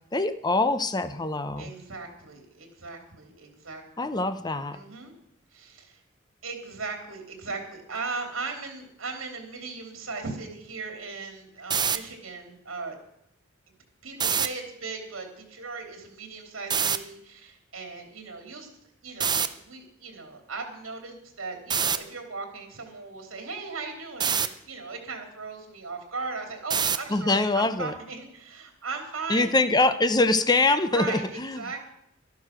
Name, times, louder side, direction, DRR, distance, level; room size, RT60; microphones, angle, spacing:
voice 1, 0.1-1.7 4.0-4.8 27.1-27.9 29.3-31.6, left 2 dB, 20° left, 11 dB, 0.7 m, -24 dB
voice 2, 1.6-4.1 4.7-5.1 5.5-6.0 6.4-12.9 14.0-18.7 19.0-29.5 30.9-31.9, right 4 dB, 75° right, 3 dB, 3.2 m, -38 dB
sound 1, 11.6-12.0 14.1-14.5 16.7-17.0 19.2-19.5 21.7-22.0 24.2-24.5 26.7-27.1, right 7 dB, 20° right, 0.6 m, -24 dB
12.5 x 11.0 x 6.1 m, 0.76 s
head